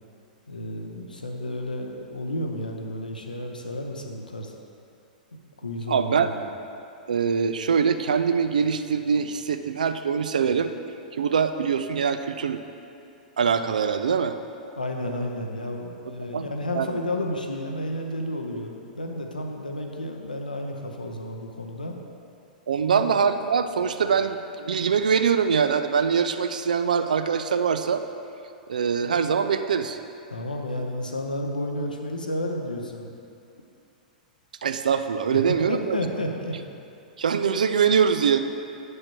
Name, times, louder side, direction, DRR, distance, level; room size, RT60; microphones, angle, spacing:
voice 1, 0.5-4.5 5.6-6.3 14.8-21.9 22.8-23.0 30.3-33.1 35.3-35.4 35.7-36.5, left 1 dB, 80° left, 2 dB, 0.7 m, -31 dB
voice 2, 5.9-6.3 7.1-10.7 11.1-12.6 13.4-14.3 16.3-17.0 22.7-28.0 28.7-30.0 34.6-36.0 37.2-38.4, right 6 dB, 65° right, 9 dB, 0.4 m, -23 dB
8.6 x 6.4 x 3.0 m, 2.6 s
figure-of-eight pair, 100°, 5 cm